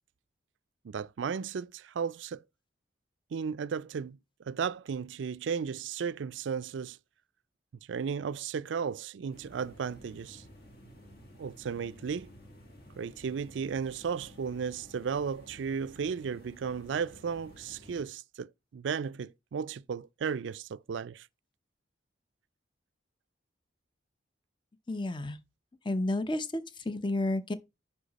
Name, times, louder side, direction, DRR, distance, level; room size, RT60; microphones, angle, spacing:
voice 1, 0.8-2.4 3.3-4.2 4.5-7.0 7.9-10.4 11.4-12.3 13.0-21.3, right 6 dB, 80° right, 0.4 m, -35 dB
sound 1, 9.3-18.0, equal, 55° left, 1.9 m, -53 dB
voice 2, 24.9-25.4 25.8-27.5, left 2 dB, 25° left, 0.7 m, -31 dB
10.0 x 4.8 x 4.0 m
head